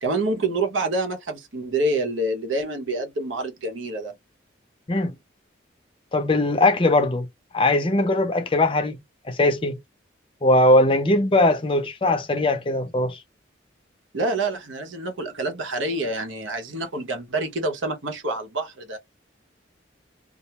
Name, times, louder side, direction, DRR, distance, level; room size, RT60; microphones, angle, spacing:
voice 1, 0.0-4.1 14.1-19.0, right 2 dB, 80° right, 0.9 m, -27 dB
voice 2, 6.1-7.3 7.5-9.0 9.3-9.8 10.4-13.2, left 2 dB, 25° left, 0.5 m, -20 dB
2.3 x 2.0 x 2.9 m
head